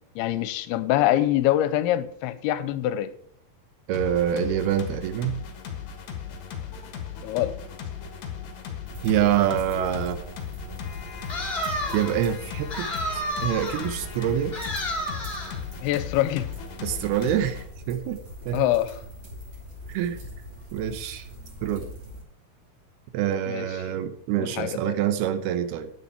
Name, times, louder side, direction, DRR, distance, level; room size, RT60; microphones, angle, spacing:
voice 1, 0.2-3.1 7.2-7.5 15.8-16.5 18.5-18.9 23.5-23.7 24.4-24.9, left 13 dB, 85° left, 2.6 m, -24 dB
sound 1, 3.9-17.6, left 8 dB, 55° left, 2.4 m, -37 dB
voice 2, 3.9-5.4 9.0-10.2 11.9-12.9 13.4-14.6 16.8-18.2 18.5-18.7 19.9-20.2 20.7-21.3 21.6-21.9 23.1-25.9, right 10 dB, 80° right, 2.7 m, -26 dB
sound 2, 8.9-22.2, equal, 40° right, 3.6 m, -42 dB
sound 3, 11.3-12.2 12.7-13.9 14.5-15.6, equal, 30° left, 1.2 m, -31 dB
10.5 x 8.9 x 4.4 m
omnidirectional pair, 4.6 m